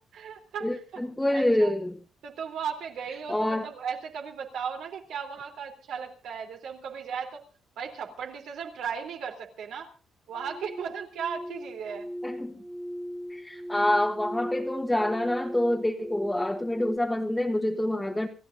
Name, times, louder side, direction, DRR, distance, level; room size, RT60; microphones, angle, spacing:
voice 1, 0.0-1.0 1.3-1.7 2.2-7.4 7.8-9.9 10.3-12.1, right 7 dB, 80° right, 3.5 m, -36 dB
voice 2, 0.6-2.0 3.3-3.7 12.2-12.6 13.3-18.3, left 1 dB, 10° left, 1.4 m, -27 dB
sound 1, 10.3-17.0, equal, 10° right, 1.5 m, -38 dB
28.5 x 15.0 x 2.7 m
cardioid pair, 95°, 0 cm